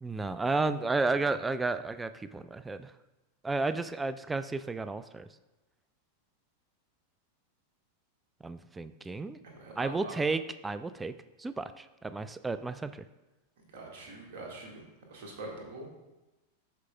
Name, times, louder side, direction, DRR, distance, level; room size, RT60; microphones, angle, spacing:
voice 1, 0.0-2.9 3.4-5.3 8.4-9.4 9.8-11.1 11.4-13.0, right 3 dB, 10° right, 13 dB, 0.3 m, -32 dB
voice 2, 9.4-10.2 13.6-14.8 15.1-15.9, right 2 dB, 50° right, -1 dB, 1.7 m, -43 dB
14.0 x 4.7 x 2.2 m, 1.1 s
figure-of-eight pair, 90°, 0 cm